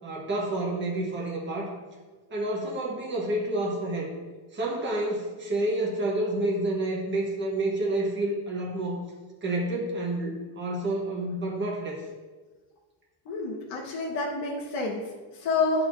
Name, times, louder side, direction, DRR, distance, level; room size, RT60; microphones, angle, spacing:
voice 1, 0.0-1.7 2.3-4.1 4.5-9.0 9.4-12.0, right 1 dB, 25° right, -3 dB, 1.4 m, -29 dB
voice 2, 13.2-15.9, left 3 dB, 65° left, -4 dB, 1.3 m, -29 dB
11.0 x 4.4 x 2.7 m, 1.4 s
cardioid pair, 125°, 49 cm